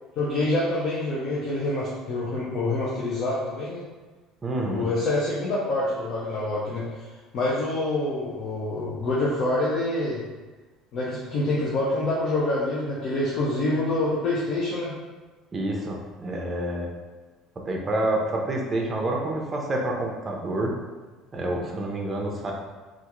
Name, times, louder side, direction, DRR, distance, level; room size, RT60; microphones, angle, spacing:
voice 1, 0.2-3.8 4.6-6.8 7.3-10.2 10.9-14.9, left 2 dB, 50° left, -7 dB, 0.7 m, -26 dB
voice 2, 4.4-4.9 15.5-16.9 17.6-20.7 21.3-22.5, right 1 dB, 20° right, 0 dB, 0.6 m, -28 dB
3.4 x 2.5 x 3.0 m, 1.3 s
cardioid pair, 140°, 0 cm